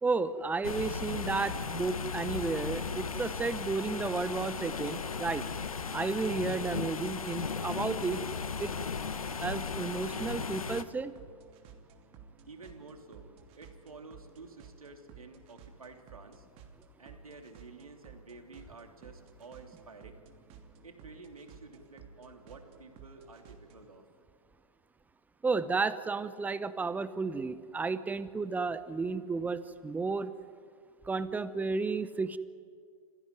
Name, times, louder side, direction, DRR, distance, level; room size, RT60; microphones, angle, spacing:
voice 1, 0.0-5.5 5.9-8.2 8.6-8.7 9.4-11.1 25.4-30.3 31.0-32.4, right 4 dB, 10° right, 14 dB, 0.9 m, -32 dB
sound 1, 0.6-10.8, left 5 dB, 80° left, 1.3 m, -36 dB
sound 2, 4.3-24.0, right 5 dB, 35° right, 2.9 m, -56 dB
voice 2, 12.5-13.3 13.6-16.5 17.0-20.2 20.8-24.0, right 3 dB, 80° right, 4 dB, 3.3 m, -51 dB
26.5 x 16.0 x 9.7 m, 2.2 s
figure-of-eight pair, 110°, 18 cm